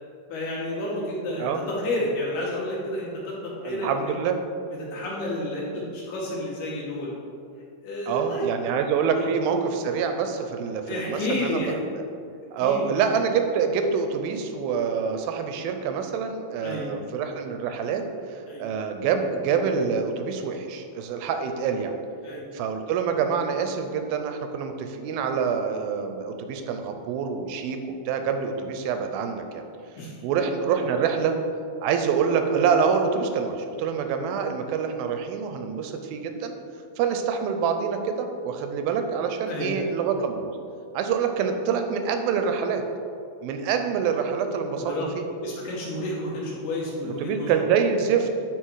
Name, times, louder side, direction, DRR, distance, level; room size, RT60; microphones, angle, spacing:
voice 1, 0.3-4.1 4.8-7.1 7.8-8.5 9.1-9.3 10.9-11.8 12.6-12.9 16.6-16.9 18.5-18.7 22.2-22.5 30.0-30.2 39.4-39.7 44.7-45.1 45.4-47.6, left 1 dB, 70° left, -5 dB, 3.3 m, -31 dB
voice 2, 3.6-4.4 8.1-12.0 12.5-18.0 18.3-21.9 22.5-27.8 28.1-29.6 30.2-31.4 31.8-36.5 37.0-40.5 40.9-42.8 43.4-44.9 47.0-48.3, right 6 dB, 85° right, 6 dB, 2.4 m, -26 dB
10.5 x 4.1 x 4.7 m, 2.4 s
omnidirectional pair, 4.3 m